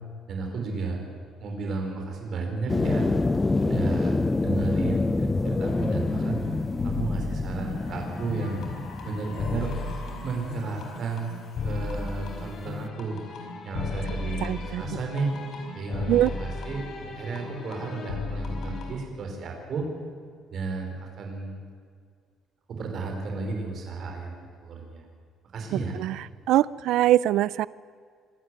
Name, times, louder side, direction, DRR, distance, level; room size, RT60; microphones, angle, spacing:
voice 1, 0.3-1.0 1.4-3.1 3.6-6.4 6.8-8.6 9.0-9.7 10.2-11.4 11.6-13.2 13.6-15.3 15.7-16.8 17.1-19.9 20.5-21.6 22.7-25.0 25.5-26.0, right 4 dB, 45° right, 2 dB, 5.2 m, -33 dB
sound 1, 2.7-10.4, left 3 dB, 15° left, 0.6 m, -27 dB
sound 2, 5.6-18.9, left 3 dB, 50° left, 4.5 m, -35 dB
Cheering / Applause, 7.1-13.7, left 3 dB, 80° left, 6.8 m, -48 dB
voice 2, 14.4-14.8 16.1-16.3 26.0-26.2 26.5-27.7, right 14 dB, 70° right, 20 dB, 0.5 m, -22 dB
25.0 x 13.5 x 9.7 m, 2.1 s
cardioid pair, 145°, 0 cm